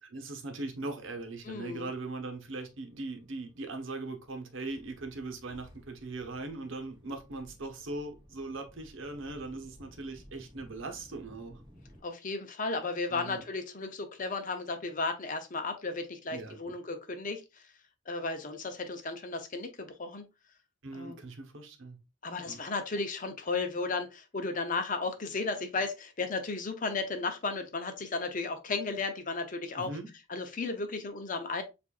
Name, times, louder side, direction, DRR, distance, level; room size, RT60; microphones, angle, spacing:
voice 1, 0.0-11.6 13.1-13.4 16.3-16.8 20.8-22.0 22.4-22.6 29.8-30.1, right 2 dB, 70° right, 1.0 m, -40 dB
sound 1, 0.7-12.0, equal, 20° right, 1.9 m, -57 dB
voice 2, 1.4-1.9 12.0-17.4 18.1-20.3 20.9-21.2 22.2-29.9 30.3-31.6, left 3 dB, 40° left, 0.7 m, -34 dB
7.2 x 2.6 x 2.4 m
head